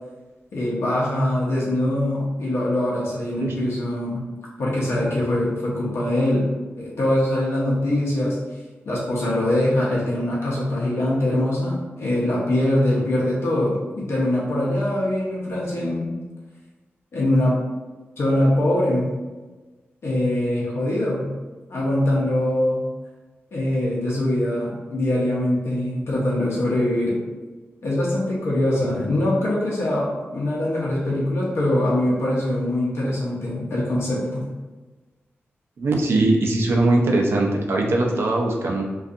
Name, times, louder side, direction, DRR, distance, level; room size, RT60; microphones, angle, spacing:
voice 1, 0.5-4.2 4.6-6.5 6.8-8.4 8.9-16.1 17.1-17.5 18.2-19.1 20.0-21.3 21.7-22.8 23.5-27.2 27.8-34.5, left 1 dB, 70° left, -6 dB, 0.6 m, -23 dB
voice 2, 35.8-38.8, right 2 dB, 65° right, 0 dB, 0.4 m, -21 dB
2.6 x 2.3 x 2.4 m, 1.2 s
wide cardioid pair, 130°, 4 cm